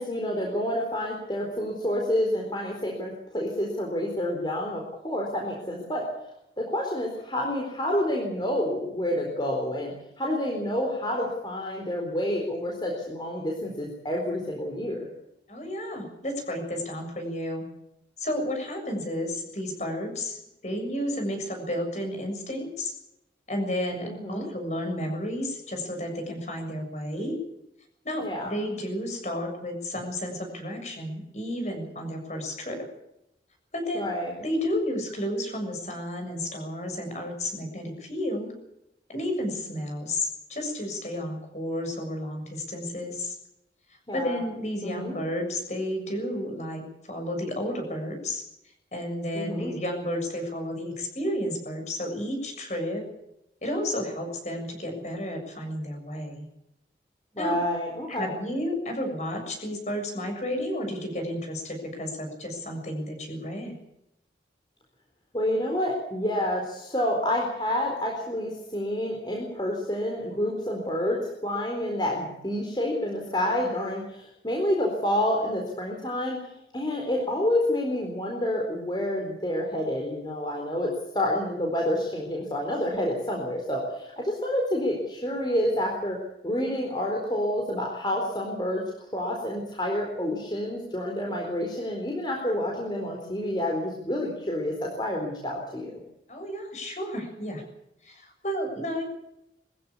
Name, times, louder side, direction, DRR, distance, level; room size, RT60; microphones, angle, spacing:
voice 1, 0.0-6.1 6.6-15.1 24.0-24.5 28.2-28.5 33.9-34.3 44.1-44.4 44.8-45.2 49.3-49.7 57.3-58.3 65.3-76.4 76.7-86.2 86.4-96.0, left 1 dB, 25° left, 0 dB, 4.2 m, -28 dB
voice 2, 15.5-17.6 18.2-22.9 23.5-27.4 28.0-32.9 33.7-34.1 34.4-38.5 39.1-43.4 44.1-46.8 47.1-48.4 48.9-53.0 53.6-56.5 57.4-57.6 58.1-63.7 96.3-97.6 98.0-99.0, left 1 dB, 40° left, 5 dB, 7.1 m, -32 dB
22.5 x 15.5 x 8.4 m, 0.82 s
head